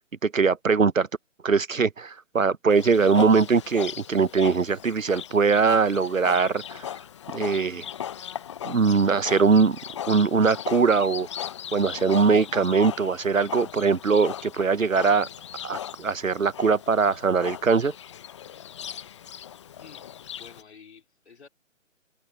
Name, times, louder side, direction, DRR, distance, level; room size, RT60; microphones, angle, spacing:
voice 1, 0.2-1.1 1.4-6.8 7.3-7.8 8.6-9.8 10.1-11.3 11.7-15.3 15.6-17.9, right 5 dB, 85° right, 1.0 m, -21 dB
Livestock farm animals working animals, 2.7-20.6, left 9 dB, 25° left, 1.0 m, -38 dB
voice 2, 19.8-21.5, left 6 dB, 55° left, 3.5 m, -51 dB
figure-of-eight pair, 150°, 39 cm